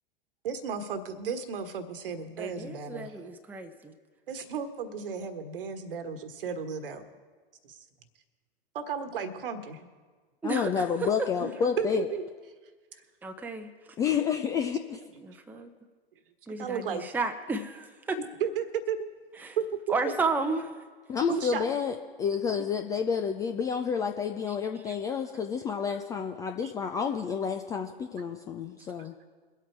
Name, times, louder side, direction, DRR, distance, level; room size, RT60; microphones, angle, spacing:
voice 1, 0.4-3.1 4.3-7.0 7.6-7.8 8.7-9.8 11.4-11.5 11.8-12.3 16.6-17.0 18.4-19.1 19.6-20.1 21.3-21.6 26.6-26.7, right 7 dB, 60° right, 10 dB, 1.4 m, -33 dB
voice 2, 2.4-3.9 10.4-11.1 13.2-13.7 15.2-15.7 16.5-18.2 19.4-19.6 19.9-20.7 24.9-25.0, right 3 dB, 5° right, 6 dB, 0.7 m, -32 dB
voice 3, 10.4-12.1 14.0-15.0 21.1-29.1, left 6 dB, 10° left, 5 dB, 0.3 m, -29 dB
23.0 x 8.2 x 4.6 m, 1.5 s
figure-of-eight pair, 100°, 31 cm